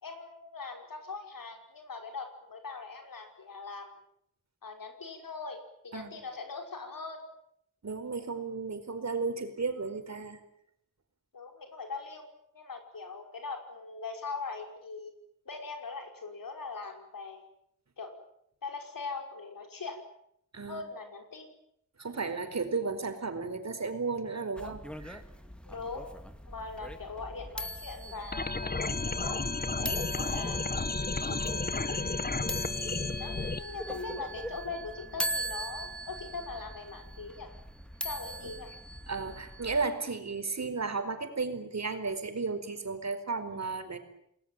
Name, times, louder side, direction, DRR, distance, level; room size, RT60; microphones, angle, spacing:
voice 1, 0.0-3.9 4.6-5.6 5.8-7.2 11.3-12.3 12.5-15.1 15.5-17.4 18.0-18.2 18.6-20.0 20.7-21.5 25.6-26.1 26.5-29.4 29.7-30.6 31.2-32.1 33.2-37.5 38.0-38.7, left 4 dB, 80° left, 4 dB, 5.6 m, -41 dB
voice 2, 7.8-10.4 20.5-20.8 22.0-25.2 31.3-31.4 39.1-44.0, right 4 dB, 55° right, 7 dB, 4.6 m, -34 dB
sound 1, 24.6-39.9, equal, 5° left, 2.4 m, -41 dB
sound 2, 28.3-33.6, left 3 dB, 30° left, 1.5 m, -32 dB
29.0 x 20.0 x 9.1 m, 0.73 s
wide cardioid pair, 130°, 33 cm